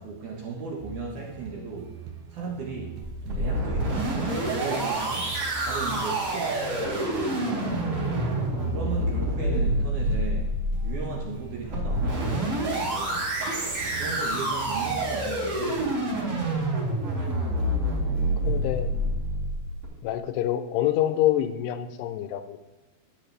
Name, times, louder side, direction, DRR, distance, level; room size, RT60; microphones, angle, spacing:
voice 1, 0.0-2.0 2.3-3.0 3.2-5.4 5.6-8.3 8.7-10.5 10.8-13.3 14.0-16.2, right 3 dB, 65° right, -2 dB, 2.0 m, -36 dB
sound 1, 0.8-18.9, right 4 dB, 85° right, 3.2 m, -43 dB
sound 2, 3.0-19.8, right 1 dB, 35° right, 3.9 m, -27 dB
voice 2, 18.4-18.9 20.0-22.6, left 12 dB, 85° left, 10 dB, 2.7 m, -26 dB
12.0 x 8.6 x 3.3 m, 1.1 s
omnidirectional pair, 4.8 m